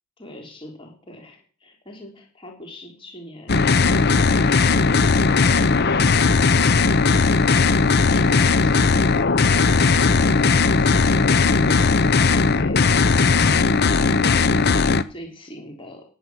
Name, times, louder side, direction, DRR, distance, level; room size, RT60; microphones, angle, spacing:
voice 1, 0.2-10.3 14.3-16.0, equal, 25° left, 1 dB, 3.6 m, -42 dB
sound 1, 3.5-15.0, left 4 dB, 45° left, 0.7 m, -17 dB
18.0 x 9.2 x 6.4 m, 0.43 s
head